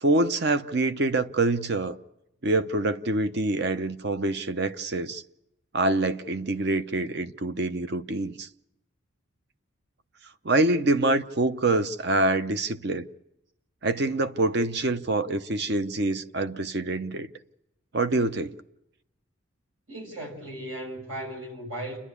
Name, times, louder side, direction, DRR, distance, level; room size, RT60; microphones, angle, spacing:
voice 1, 0.0-2.0 2.4-5.2 5.7-8.5 10.4-13.0 13.8-17.3 17.9-18.6, right 2 dB, 55° right, 0.8 m, -25 dB
voice 2, 19.9-22.0, right 1 dB, 75° right, 6.3 m, -36 dB
29.5 x 11.0 x 8.4 m
head